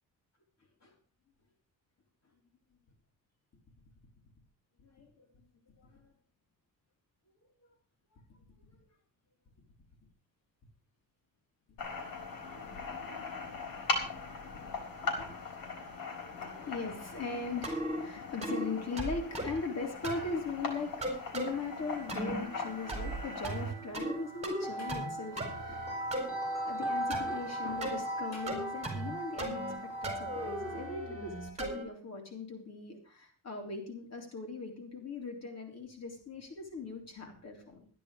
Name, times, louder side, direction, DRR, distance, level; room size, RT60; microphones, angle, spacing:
voice 1, 4.8-5.3 5.8-6.1 8.1-8.2 8.8-8.9 14.6-15.4 16.6-21.1 21.3-25.9 26.6-37.9, left 4 dB, 50° left, 2 dB, 3.7 m, -40 dB
sound 1, 11.8-23.7, left 4 dB, 80° left, 3.7 m, -40 dB
sound 2, 17.6-18.0 18.4-18.7 19.0-19.6 20.0-20.3 21.0-21.5 22.1-22.4 22.9-23.2 23.4-24.2 24.4-25.1 25.4-26.3 27.1-27.3 27.8-28.0 28.5-29.1 29.4-29.8 30.0-31.8, right 1 dB, 20° right, 4.5 m, -36 dB
sound 3, 21.6-31.0, right 1 dB, 10° left, 7.5 m, -39 dB
12.5 x 10.5 x 5.1 m, 0.42 s
cardioid pair, 125°, 34 cm